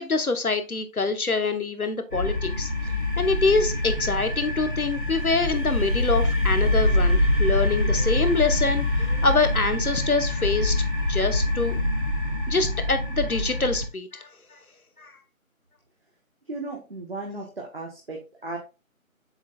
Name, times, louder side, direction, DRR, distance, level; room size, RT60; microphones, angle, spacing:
voice 1, 0.0-2.7 3.2-10.8 11.1-11.8 12.5-14.6 15.0-15.1, left 3 dB, 90° left, 9 dB, 1.4 m, -25 dB
sound 1, 2.1-13.9, left 1 dB, 35° left, 1.1 m, -25 dB
voice 2, 16.5-18.6, right 2 dB, 45° right, 0 dB, 1.4 m, -35 dB
7.3 x 6.2 x 2.5 m, 0.30 s
figure-of-eight pair, 170°, 42 cm